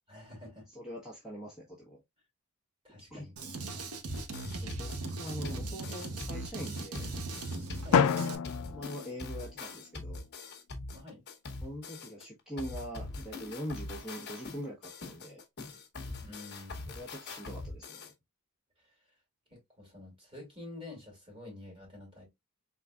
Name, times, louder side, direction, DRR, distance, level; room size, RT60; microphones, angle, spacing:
voice 1, 0.1-0.7 2.8-3.3 7.8-8.0 10.9-11.2 16.2-17.0 19.5-22.3, left 2 dB, 25° right, 2.8 m, -48 dB
voice 2, 0.7-2.0 3.1-3.3 4.0-4.2 4.6-7.1 8.7-10.3 11.6-15.4 16.9-18.1, equal, 5° right, 1.2 m, -43 dB
Drum kit, 3.4-8.4, right 3 dB, 75° right, 0.9 m, -39 dB
sound 1, 4.1-12.2 12.6-18.1, left 3 dB, 50° left, 1.0 m, -43 dB
Drum, 7.9-9.9, left 7 dB, 80° left, 0.4 m, -29 dB
4.1 x 3.8 x 2.3 m
head